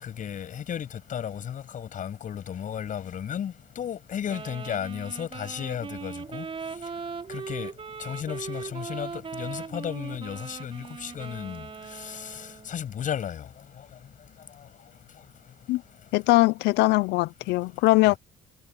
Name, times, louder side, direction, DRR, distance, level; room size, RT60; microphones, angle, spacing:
voice 1, 0.0-6.4 7.3-7.7 8.0-9.1 9.4-11.6 12.0-12.2 12.7-13.4, left 9 dB, 50° left, 6.8 m, -34 dB
Wind instrument woodwind instrument, 4.3-12.8, right 5 dB, 35° right, 4.5 m, -39 dB
voice 2, 16.1-18.1, left 20 dB, 85° left, 0.5 m, -21 dB
cardioid pair, 110°, 17 cm